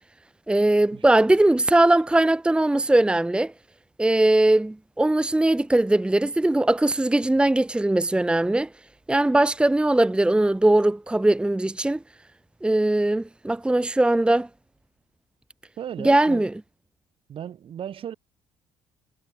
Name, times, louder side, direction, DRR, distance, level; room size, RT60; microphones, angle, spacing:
voice 1, 0.5-3.5 4.0-8.7 9.1-12.0 12.6-14.5 16.0-16.5, right 1 dB, 10° right, 1.0 m, -20 dB
voice 2, 15.8-16.5 17.3-18.1, right 9 dB, 55° right, 5.4 m, -35 dB
supercardioid pair, 85°, 11 cm